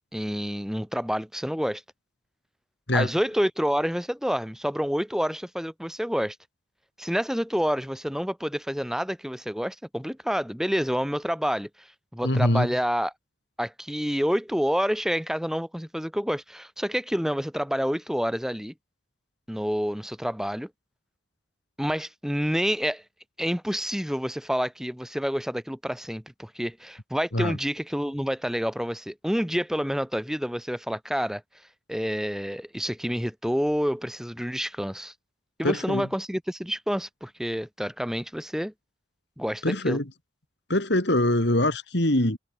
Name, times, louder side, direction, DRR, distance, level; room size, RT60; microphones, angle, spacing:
voice 1, 0.1-1.8 2.9-6.4 7.0-11.9 12.1-13.1 13.6-18.7 19.5-20.7 21.8-23.0 23.4-31.4 31.9-35.1 35.6-38.7 39.4-40.0, equal, ahead, 6.8 m, -28 dB
voice 2, 12.2-12.7 27.3-27.6 35.6-36.1 39.6-40.1 40.7-42.4, left 1 dB, 60° left, 3.3 m, -23 dB
head